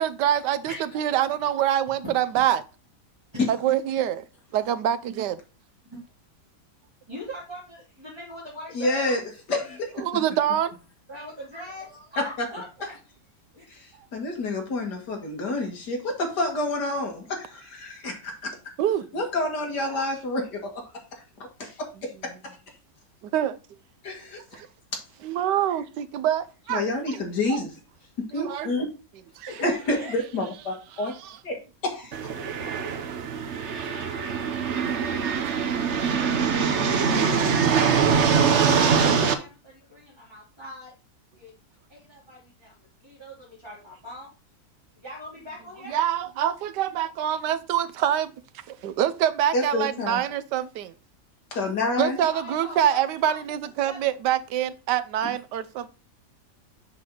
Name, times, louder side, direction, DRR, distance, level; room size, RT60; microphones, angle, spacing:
voice 1, 0.0-2.6 3.5-4.2 4.5-5.4 9.9-10.7 18.8-19.1 21.9-22.4 23.2-23.6 25.2-27.2 27.5-27.7 28.3-28.7 29.4-30.6 31.2-31.4 32.7-33.0 35.2-35.3 45.8-48.3 48.7-50.9 52.0-55.9, right 10 dB, 80° right, 1.3 m, -26 dB
voice 2, 7.1-9.2 11.1-12.9 13.5-13.6 19.8-20.2 24.3-24.4 29.5-30.1 37.5-40.9 41.3-41.5 41.9-42.7 43.0-44.3 44.9-45.9 52.3-53.4 53.8-54.0, equal, 15° right, 3.4 m, -41 dB
voice 3, 8.7-9.2 9.5-10.1 12.2-12.5 13.7-18.5 19.1-20.7 21.4-22.6 24.0-24.6 26.7-27.7 28.2-28.9 29.6-31.1 31.4-31.6 31.8-32.3 49.5-50.2 51.5-52.2 55.2-55.3, left 2 dB, 70° left, 2.5 m, -28 dB
sound 1, 32.1-39.3, right 6 dB, 50° right, 1.0 m, -23 dB
7.4 x 6.1 x 3.9 m
omnidirectional pair, 1.8 m